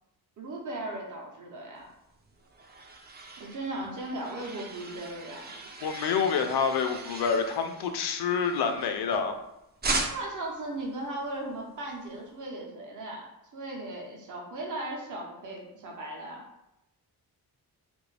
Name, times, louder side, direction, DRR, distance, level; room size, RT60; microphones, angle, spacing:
voice 1, 0.4-1.9 3.4-5.5 10.1-16.4, right 2 dB, 50° right, -1 dB, 0.8 m, -37 dB
sound 1, 2.1-9.4 9.8-10.5, right 3 dB, 25° right, 0.5 m, -38 dB
voice 2, 5.8-9.4, left 6 dB, 80° left, 7 dB, 0.5 m, -27 dB
3.2 x 2.6 x 3.2 m, 0.88 s
wide cardioid pair, 115°, 39 cm